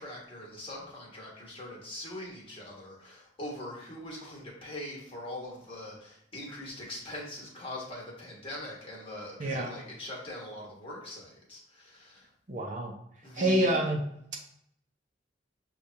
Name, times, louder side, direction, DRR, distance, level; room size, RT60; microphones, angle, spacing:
voice 1, 0.0-12.3 13.2-13.7, left 1 dB, 30° left, -3 dB, 1.3 m, -42 dB
voice 2, 9.4-9.7 12.5-12.9 13.4-14.0, right 1 dB, 45° right, 0 dB, 0.6 m, -27 dB
6.5 x 2.4 x 2.8 m, 0.73 s
head